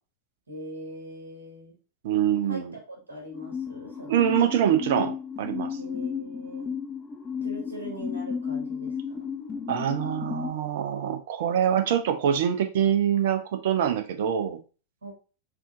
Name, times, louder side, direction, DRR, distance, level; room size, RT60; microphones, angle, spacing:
voice 1, 0.5-1.8 2.5-4.3 5.8-6.8 7.4-8.9 15.0-15.1, equal, 70° right, -2 dB, 1.5 m, -41 dB
voice 2, 2.0-2.7 4.1-5.8 9.7-14.6, right 9 dB, 55° right, 6 dB, 0.5 m, -25 dB
sound 1, 3.3-10.5, left 6 dB, 15° left, 0.6 m, -33 dB
3.6 x 3.5 x 2.5 m, 0.35 s
figure-of-eight pair, 90°, 0 cm